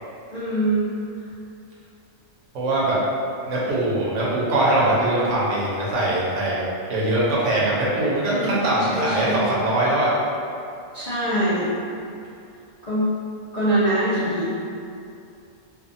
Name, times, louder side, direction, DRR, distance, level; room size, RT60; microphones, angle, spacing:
voice 1, 0.3-0.9 8.3-8.6 8.9-9.5 10.9-11.7 12.8-13.1 13.5-14.5, right 1 dB, 60° left, -12 dB, 0.4 m, -23 dB
voice 2, 2.5-3.0 3.5-6.6 6.9-10.1, right 1 dB, 75° right, -7 dB, 1.0 m, -22 dB
2.6 x 2.3 x 2.5 m, 2.5 s
omnidirectional pair, 1.4 m